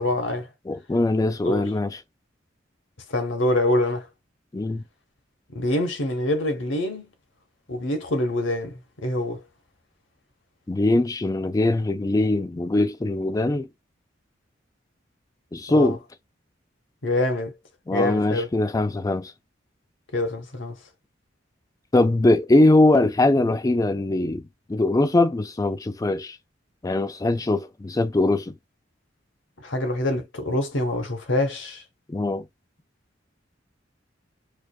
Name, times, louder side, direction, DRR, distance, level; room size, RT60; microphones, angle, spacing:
voice 1, 0.0-0.5 1.4-1.7 3.1-4.1 5.5-7.1 7.7-9.4 15.7-16.0 17.0-17.5 17.9-18.5 20.1-20.8 29.6-31.8, left 1 dB, 80° left, 1.1 m, -25 dB
voice 2, 0.7-2.0 4.5-4.8 10.7-13.7 15.5-16.0 17.9-19.3 21.9-24.4 24.7-26.4 26.8-28.5 32.1-32.5, left 2 dB, 20° left, 0.4 m, -21 dB
4.7 x 2.4 x 2.3 m
head